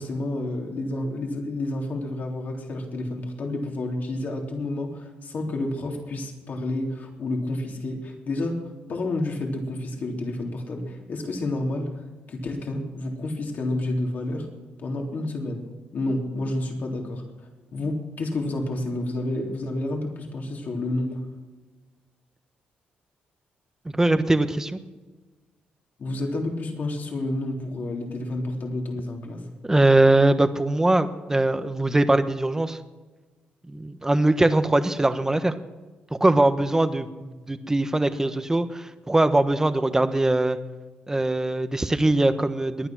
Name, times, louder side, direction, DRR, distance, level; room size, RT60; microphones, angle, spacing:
voice 1, 0.0-8.6 8.9-12.0 12.3-14.5 14.8-15.6 15.9-21.2 26.0-29.4, left 2 dB, 55° left, 1 dB, 3.4 m, -30 dB
voice 2, 23.9-24.8 29.6-32.8 33.7-35.5 36.2-40.6 41.1-42.9, right 2 dB, 15° right, 10 dB, 1.1 m, -21 dB
21.5 x 9.9 x 6.1 m, 1.3 s
cardioid pair, 85°, 3 cm